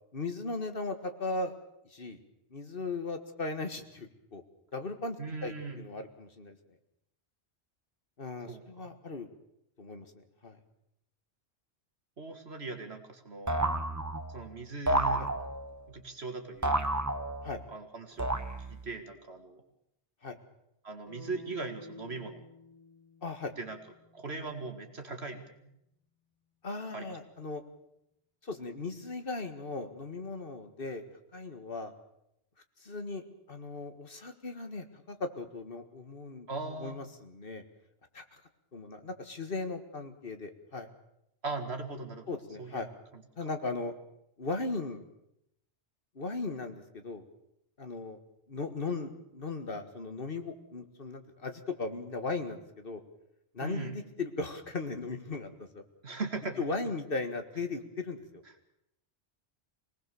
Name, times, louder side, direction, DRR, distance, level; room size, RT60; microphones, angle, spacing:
voice 1, 0.1-1.6 1.9-2.2 2.5-4.4 4.7-5.2 5.4-6.6 8.2-9.3 9.8-10.1 10.4-10.6 15.2-15.3 17.4-17.6 20.2-20.4 23.2-23.5 26.6-27.6 28.4-31.0 31.3-31.9 32.8-36.5 36.8-37.6 38.1-38.4 38.7-40.9 42.3-42.9 43.4-43.9 44.4-45.0 46.2-47.2 47.8-48.2 48.5-53.0 53.5-55.8 56.6-58.4, left 3 dB, 55° left, 7 dB, 1.9 m, -37 dB
voice 2, 5.2-5.8 8.5-8.9 12.2-13.6 14.3-15.2 15.9-16.7 17.7-18.3 18.7-19.6 20.8-22.4 23.6-23.8 24.1-25.4 26.9-27.1 36.5-37.0 41.4-42.3 42.6-42.8 53.6-53.9 56.0-56.6, right 3 dB, 65° right, 5 dB, 2.5 m, -39 dB
sound 1, 13.5-14.4 14.9-15.8 16.6-17.6 18.2-18.9, right 1 dB, 15° right, 1.2 m, -31 dB
sound 2, 21.1-25.1, left 2 dB, 35° right, 7.6 m, -52 dB
25.0 x 19.0 x 7.0 m, 0.80 s
omnidirectional pair, 1.1 m